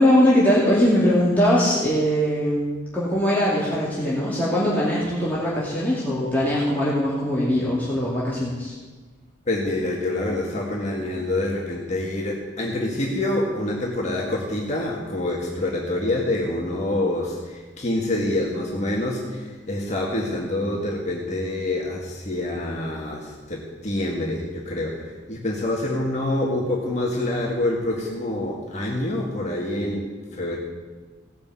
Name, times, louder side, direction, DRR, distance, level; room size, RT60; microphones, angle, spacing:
voice 1, 0.0-8.7, equal, 10° left, -8 dB, 2.5 m, -21 dB
voice 2, 9.5-30.6, left 1 dB, 35° left, -3 dB, 1.9 m, -26 dB
17.0 x 6.9 x 8.4 m, 1.3 s
head